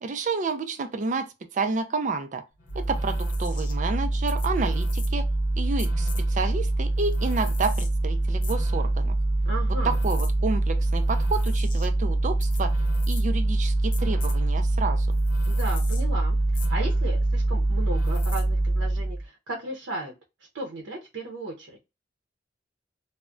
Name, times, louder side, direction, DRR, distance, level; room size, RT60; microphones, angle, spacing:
voice 1, 0.0-2.4 2.7-5.2 5.6-9.2 9.8-12.8 13.1-15.2, right 4 dB, 40° right, 0.4 m, -30 dB
sound 1, 2.7-19.2, right 2 dB, 45° left, 0.6 m, -24 dB
voice 2, 9.4-10.0 15.5-16.4 16.7-20.1 20.5-21.8, right 2 dB, 85° right, 0.6 m, -35 dB
2.2 x 2.1 x 3.6 m
head